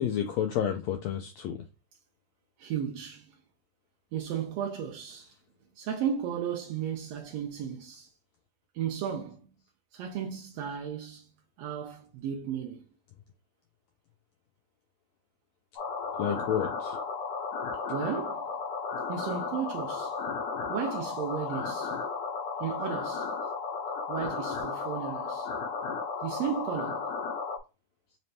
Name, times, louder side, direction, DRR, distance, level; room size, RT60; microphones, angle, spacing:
voice 1, 0.0-1.6 16.2-17.0, left 9 dB, 85° left, 1.5 m, -30 dB
voice 2, 2.6-3.4 4.1-5.4 5.8-8.1 8.7-9.5 9.9-11.3 11.6-12.9 17.9-18.5 19.1-20.2 20.7-22.0 22.6-23.3 24.1-25.5 26.2-27.1, right 8 dB, 80° right, 1.5 m, -34 dB
sound 1, 15.8-27.6, left 5 dB, 70° left, 1.7 m, -34 dB
5.2 x 3.3 x 2.7 m
omnidirectional pair, 3.7 m